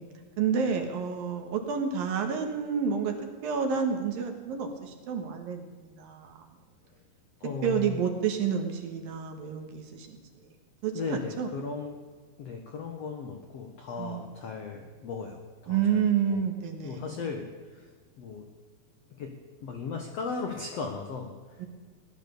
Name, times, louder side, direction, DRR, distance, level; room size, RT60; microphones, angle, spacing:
voice 1, 0.4-3.1 3.4-6.4 7.6-10.2 10.8-11.5 14.0-14.3 15.7-17.1 21.6-21.7, right 7 dB, 65° right, 3 dB, 2.9 m, -29 dB
voice 2, 7.4-8.0 10.9-11.9 12.4-16.4 16.8-18.4 19.2-19.3 19.6-21.6, left 5 dB, 80° left, 3 dB, 1.4 m, -37 dB
17.5 x 11.0 x 6.8 m, 1.5 s
omnidirectional pair, 4.7 m